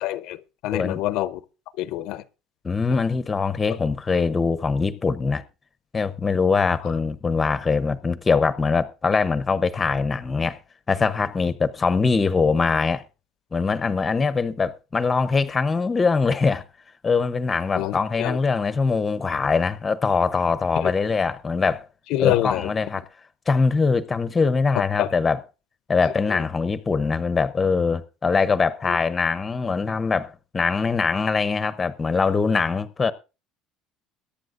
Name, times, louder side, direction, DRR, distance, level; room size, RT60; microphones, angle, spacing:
voice 1, 0.0-0.4 0.6-1.4 1.8-2.2 17.7-18.4 20.8-20.9 22.1-22.7 25.0-25.1 26.3-26.4 28.9-29.0, left 14 dB, 65° left, 0.6 m, -26 dB
voice 2, 2.6-5.4 5.9-10.6 10.9-13.0 13.5-16.6 17.0-21.9 22.2-23.0 23.5-25.4 25.9-33.1, left 4 dB, 15° left, 0.7 m, -22 dB
22.0 x 10.0 x 2.5 m
cardioid pair, 155°, 0 cm